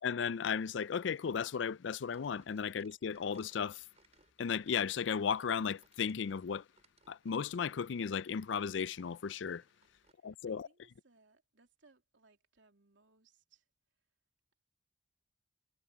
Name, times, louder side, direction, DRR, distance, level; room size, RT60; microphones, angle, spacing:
voice 1, 0.0-3.8 4.4-6.6 7.1-9.6 10.2-10.7, left 6 dB, 80° left, 0.4 m, -35 dB
sound 1, 2.1-10.1, right 4 dB, 35° right, 5.8 m, -70 dB
voice 2, 10.1-13.7, right 3 dB, 90° right, 3.2 m, -68 dB
head